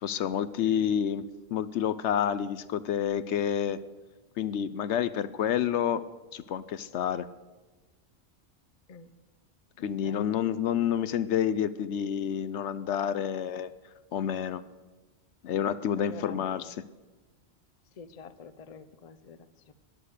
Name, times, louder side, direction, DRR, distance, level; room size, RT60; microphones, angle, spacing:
voice 1, 0.0-1.3 1.5-3.8 4.4-6.0 6.3-7.3 9.8-13.7 14.1-14.6 15.4-16.6, left 9 dB, 75° left, 14 dB, 0.9 m, -29 dB
voice 2, 9.7-10.3 16.0-16.9 17.9-19.7, left 5 dB, 40° left, 14 dB, 0.6 m, -47 dB
14.0 x 9.9 x 6.6 m, 1.2 s
omnidirectional pair, 1.2 m